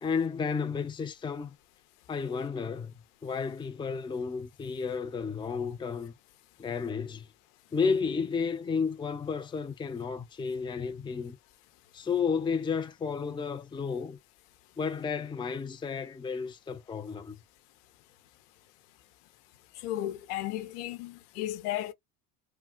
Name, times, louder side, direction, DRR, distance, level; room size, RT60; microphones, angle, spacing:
voice 1, 0.0-1.5 2.1-2.9 3.2-6.1 6.6-7.3 7.7-11.4 11.9-14.2 14.8-17.4, left 5 dB, 10° left, 0.5 m, -32 dB
voice 2, 19.8-21.9, left 13 dB, 80° left, 0.8 m, -34 dB
3.5 x 2.3 x 2.3 m
hypercardioid pair, 75°, 46 cm